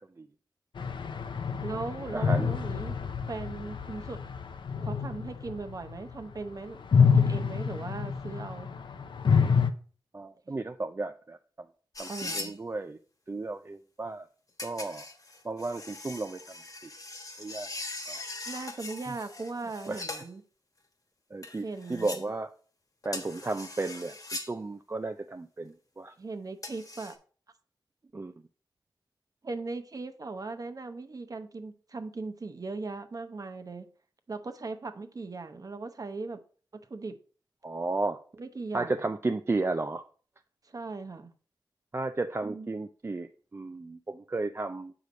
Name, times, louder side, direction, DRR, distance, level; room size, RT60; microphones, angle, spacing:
sound 1, 0.8-6.4 6.7-9.7, left 6 dB, 75° left, 0.6 m, -27 dB
voice 1, 1.6-3.0 3.3-4.2 4.8-8.7 10.5-10.6 12.1-12.5 18.5-20.4 21.6-22.3 26.2-27.2 29.4-33.9 34.3-36.4 36.7-37.2 38.4-39.0 40.6-41.3 42.4-42.7, right 3 dB, 45° right, 0.9 m, -38 dB
voice 2, 2.1-2.5 10.1-11.4 12.0-13.0 13.3-14.3 14.6-15.1 15.4-16.4 17.4-17.7 18.1-18.2 19.9-20.0 21.3-22.5 23.0-24.2 24.5-26.1 28.1-28.3 37.6-38.2 38.7-40.0 41.9-44.9, right 3 dB, 30° right, 0.4 m, -33 dB
sound 2, 11.9-12.5 14.6-20.3 21.4-22.2 23.0-24.5 26.6-27.1, left 2 dB, 45° left, 1.3 m, -40 dB
6.7 x 4.9 x 3.9 m
cardioid pair, 60°, 8 cm